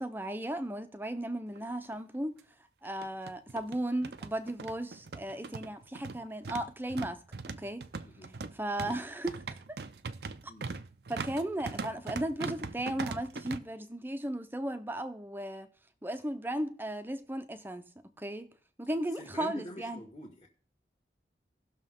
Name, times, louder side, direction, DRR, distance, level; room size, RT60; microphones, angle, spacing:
voice 1, 0.0-2.3 2.8-7.9 8.5-9.4 9.7-9.8 11.1-15.7 16.0-17.9 18.2-18.5 18.8-20.0, right 1 dB, 10° right, 0.7 m, -36 dB
sound 1, 1.5-1.6 1.9-2.0 2.8-13.6, right 4 dB, 65° right, 0.6 m, -41 dB
voice 2, 8.0-8.3 8.8-9.0 10.5-10.7 19.0-20.5, equal, 35° left, 1.6 m, -46 dB
17.5 x 6.4 x 3.6 m
head